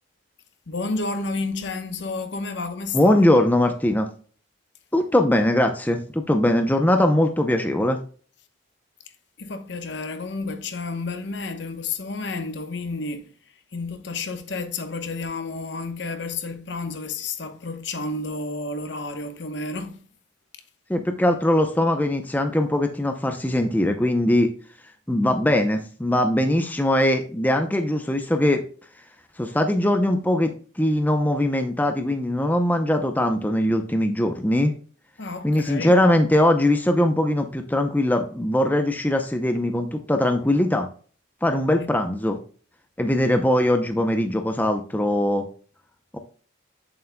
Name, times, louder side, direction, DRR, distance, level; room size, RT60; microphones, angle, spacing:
voice 1, 0.7-3.4 9.4-13.3 13.7-20.1 35.2-36.0 41.8-41.9, left 3 dB, 60° left, 0.9 m, -31 dB
voice 2, 2.9-4.1 4.9-8.0 20.9-24.5 25.1-28.6 29.4-34.7 35.4-40.9 41.4-42.4 43.0-45.5 46.1-46.2, left 1 dB, 10° left, 0.6 m, -21 dB
8.3 x 7.5 x 2.2 m
head